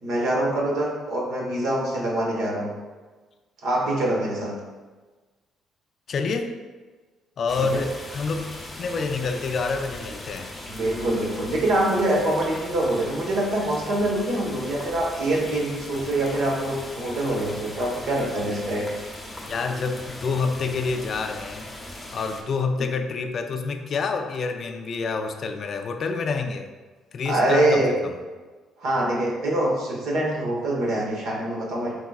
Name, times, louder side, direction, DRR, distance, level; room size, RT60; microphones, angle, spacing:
voice 1, 0.0-2.7 3.6-4.5 7.6-7.8 10.7-18.9 27.2-27.9 28.8-31.9, right 1 dB, 75° right, -3 dB, 1.1 m, -24 dB
voice 2, 6.1-6.5 7.4-10.5 19.4-21.7 22.1-26.7 27.1-28.1, left 4 dB, 55° left, 6 dB, 0.4 m, -28 dB
sound 1, 7.5-22.4, left 1 dB, 15° left, 0.7 m, -39 dB
4.7 x 3.5 x 2.3 m, 1.3 s
cardioid pair, 85°, 0 cm